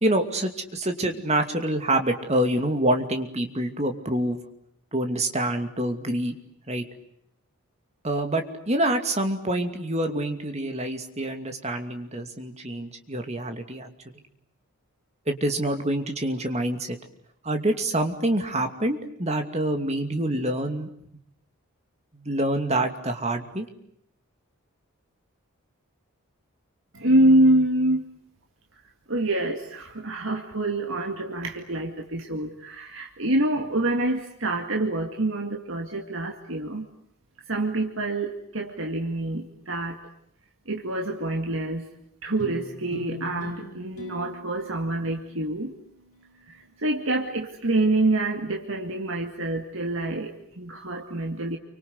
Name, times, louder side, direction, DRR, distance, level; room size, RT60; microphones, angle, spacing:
voice 1, 0.0-4.4 4.9-6.3 6.7-6.8 8.0-13.9 15.3-17.0 17.4-20.9 22.1-23.7, right 1 dB, 30° right, 6 dB, 2.6 m, -26 dB
voice 2, 26.9-28.1 29.1-36.9 37.5-40.0 40.7-41.9 42.2-45.7 46.5-51.6, right 1 dB, 60° right, 3 dB, 2.2 m, -26 dB
sound 1, 42.4-47.0, left 2 dB, 35° left, 7.4 m, -44 dB
29.5 x 25.0 x 8.0 m, 0.73 s
head